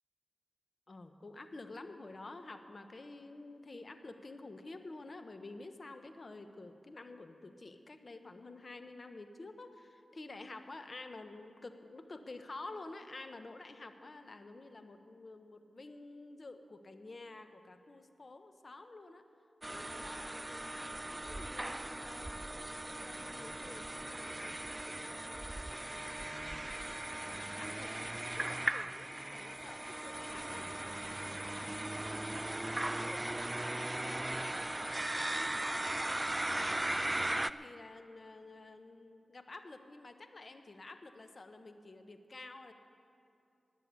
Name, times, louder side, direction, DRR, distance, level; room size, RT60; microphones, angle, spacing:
voice 1, 0.9-19.2 19.6-22.4 22.9-27.3 27.5-31.0 31.3-33.5 34.7-36.2 37.1-42.7, left 2 dB, 50° left, 7 dB, 1.1 m, -50 dB
sound 1, 19.6-37.5, right 1 dB, 20° right, 0.4 m, -38 dB
20.0 x 6.9 x 8.3 m, 2.5 s
cardioid pair, 60°, 0 cm